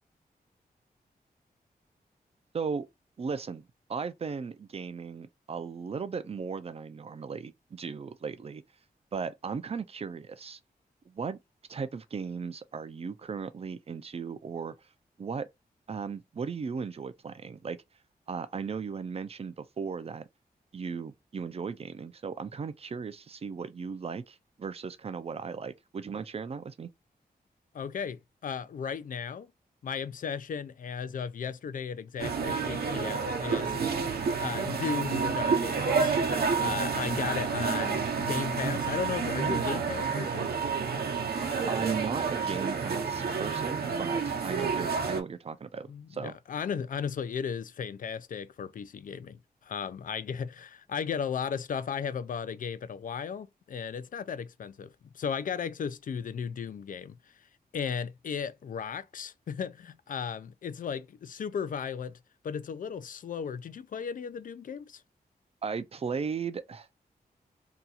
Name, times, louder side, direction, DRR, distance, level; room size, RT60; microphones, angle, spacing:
voice 1, 2.5-2.9 3.2-8.6 9.1-10.6 11.1-11.4 11.7-14.7 15.2-15.5 15.9-17.8 18.3-20.2 20.7-26.9 41.7-46.3 65.6-66.9, right 5 dB, 40° right, 0.4 m, -36 dB
voice 2, 27.7-29.5 29.8-40.5 45.9-54.9 55.1-57.1 57.7-62.2 62.4-65.0, left 7 dB, 55° left, 0.4 m, -35 dB
sound 1, 32.2-45.2, right 5 dB, 75° right, 0.8 m, -29 dB
2.8 x 2.3 x 3.9 m
wide cardioid pair, 130°, 16 cm